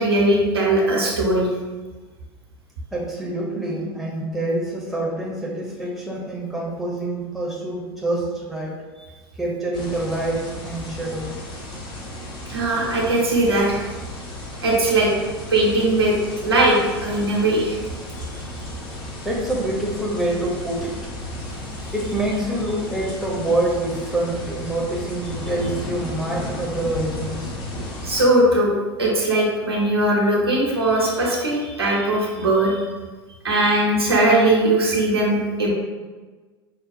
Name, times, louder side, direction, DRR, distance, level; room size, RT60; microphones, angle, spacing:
voice 1, 0.0-1.5 12.5-13.9 14.6-15.1 15.5-16.1 16.4-17.8 28.0-28.7 29.0-32.8 33.4-35.7, right 1 dB, 80° right, -4 dB, 1.0 m, -19 dB
voice 2, 2.9-8.8 9.4-11.3 19.2-21.0 21.9-27.5, right 1 dB, ahead, -4 dB, 0.8 m, -26 dB
sound 1, 9.7-28.2, left 1 dB, 40° left, 0.8 m, -34 dB
5.3 x 2.3 x 2.6 m, 1.3 s
figure-of-eight pair, 80°, 13 cm